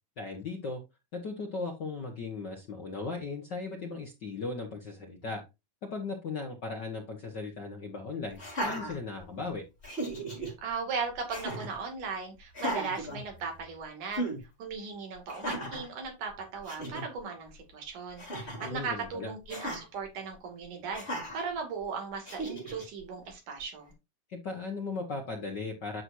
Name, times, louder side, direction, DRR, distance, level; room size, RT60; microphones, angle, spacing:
voice 1, 0.2-0.8 1.1-5.4 5.9-9.6 18.6-19.3 24.3-26.0, left 3 dB, 80° left, 2 dB, 0.9 m, -37 dB
Laughter, 8.3-9.5 9.8-10.5 11.3-11.8 12.5-13.7 14.1-14.4 15.3-15.9 16.4-16.5 16.6-17.0 18.2-18.8 19.5-19.8 20.9-21.4 22.2-22.8, right 1 dB, 15° left, 4.5 m, -36 dB
voice 2, 10.4-14.3 14.6-21.1 21.3-23.9, right 5 dB, 65° right, 2 dB, 3.9 m, -37 dB
9.8 x 6.2 x 2.7 m, 0.24 s
omnidirectional pair, 4.0 m